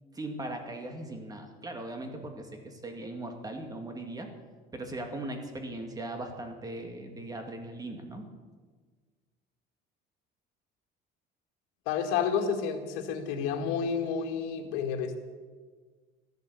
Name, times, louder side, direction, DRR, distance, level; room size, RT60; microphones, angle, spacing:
voice 1, 0.1-4.3 4.7-8.2, right 2 dB, 20° right, 4 dB, 2.3 m, -39 dB
voice 2, 11.9-15.2, left 6 dB, 85° left, 5 dB, 2.1 m, -30 dB
13.5 x 12.0 x 8.3 m, 1.5 s
cardioid pair, 130°, 20 cm